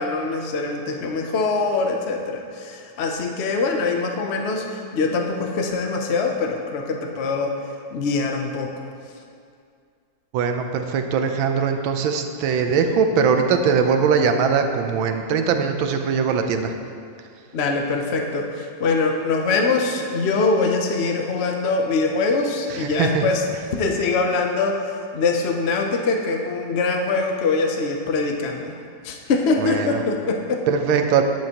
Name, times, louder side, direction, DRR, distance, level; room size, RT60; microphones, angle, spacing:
voice 1, 0.0-7.5 7.9-8.7 17.5-23.4 23.8-28.8 29.0-30.7, left 3 dB, 75° left, 2 dB, 0.5 m, -23 dB
voice 2, 10.3-16.7 22.8-23.2 29.6-30.0 30.7-31.2, right 6 dB, 90° right, 6 dB, 1.5 m, -21 dB
10.5 x 9.5 x 2.9 m, 2.3 s
omnidirectional pair, 2.1 m